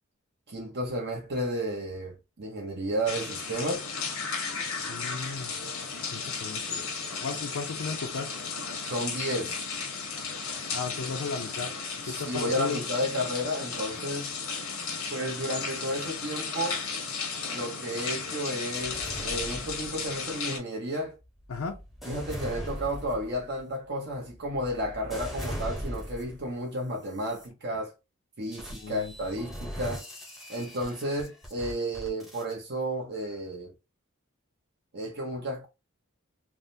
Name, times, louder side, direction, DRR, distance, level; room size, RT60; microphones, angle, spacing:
voice 1, 0.5-3.9 8.8-9.6 12.0-14.3 15.1-16.8 17.5-21.1 22.1-27.9 28.4-30.0 30.5-33.7 34.9-35.7, equal, 50° right, 0.7 m, -32 dB
sound 1, 3.1-20.6, left 5 dB, 90° left, 0.9 m, -35 dB
voice 2, 4.9-5.5 6.1-6.9 7.2-8.3 10.7-11.7 12.0-12.8 21.5-21.8 28.7-29.1, left 4 dB, 70° left, 0.5 m, -35 dB
sound 2, 18.7-20.3 21.0-26.5 27.1-27.5 28.5-32.5, equal, ahead, 0.7 m, -40 dB
3.4 x 2.1 x 2.6 m
head